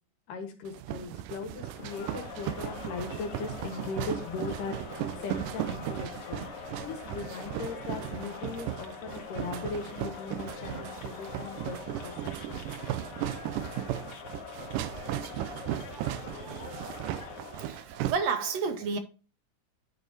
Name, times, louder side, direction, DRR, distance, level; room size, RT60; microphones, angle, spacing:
voice 1, 0.3-11.8 12.0-12.1 12.4-12.6, left 5 dB, 90° left, 2.9 m, -39 dB
sound 1, 0.7-18.1, right 13 dB, 90° right, 2.2 m, -36 dB
Crowd, 1.6-17.9, left 6 dB, 65° left, 1.5 m, -44 dB
voice 2, 17.6-19.0, right 5 dB, 70° right, 1.7 m, -30 dB
10.0 x 4.8 x 4.0 m
omnidirectional pair, 3.7 m